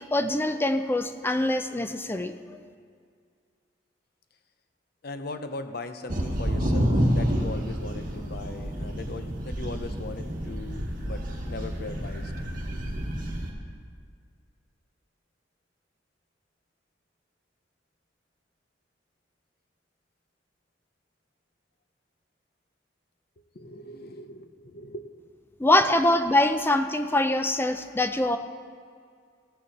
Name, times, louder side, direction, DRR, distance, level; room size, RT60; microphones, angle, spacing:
voice 1, 0.0-2.6 25.6-28.4, left 1 dB, 10° left, 8 dB, 0.4 m, -24 dB
voice 2, 5.0-12.3 23.5-25.1, left 2 dB, 55° left, 9 dB, 0.8 m, -39 dB
sound 1, 6.1-13.5, equal, 50° right, 1.4 m, -29 dB
16.5 x 9.5 x 4.2 m, 2.1 s
head